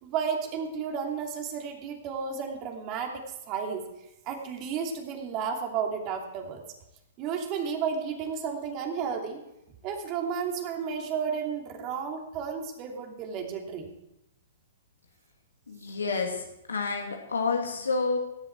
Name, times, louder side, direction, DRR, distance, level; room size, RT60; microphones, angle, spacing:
voice 1, 0.0-3.9 4.2-6.6 7.2-9.4 9.8-13.9, right 6 dB, 35° right, 2 dB, 2.7 m, -32 dB
voice 2, 15.7-18.2, left 4 dB, 85° left, 2 dB, 2.3 m, -29 dB
17.0 x 10.5 x 4.7 m, 0.88 s
hypercardioid pair, 115°, 0 cm